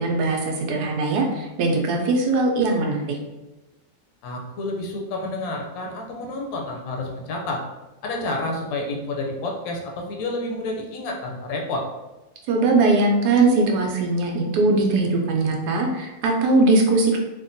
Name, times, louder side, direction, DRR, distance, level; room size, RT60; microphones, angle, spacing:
voice 1, 0.0-3.2 12.5-17.2, right 2 dB, 85° right, 1 dB, 1.1 m, -20 dB
voice 2, 4.2-7.6 8.0-11.8, left 2 dB, 75° left, 0 dB, 1.0 m, -29 dB
3.5 x 2.1 x 2.6 m, 1.0 s
omnidirectional pair, 1.6 m